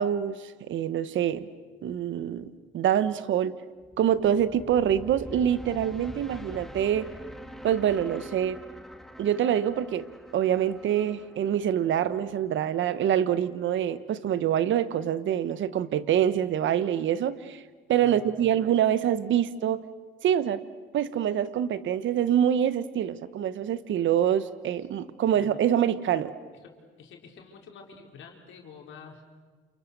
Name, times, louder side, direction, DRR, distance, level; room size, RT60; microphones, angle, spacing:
voice 1, 0.0-1.5 1.8-3.5 4.0-7.1 7.6-8.6 9.2-10.1 10.3-17.6 17.9-19.8 20.2-20.6 20.9-26.3, right 10 dB, 75° right, 14 dB, 1.2 m, -25 dB
sound 1, 3.8-12.9, equal, ahead, 1.8 m, -45 dB
voice 2, 18.0-18.6 25.2-25.5 26.6-26.7 27.0-29.2, left 6 dB, 75° left, 1 dB, 4.5 m, -48 dB
29.0 x 29.0 x 6.8 m, 1.5 s
cardioid pair, 90°, 20 cm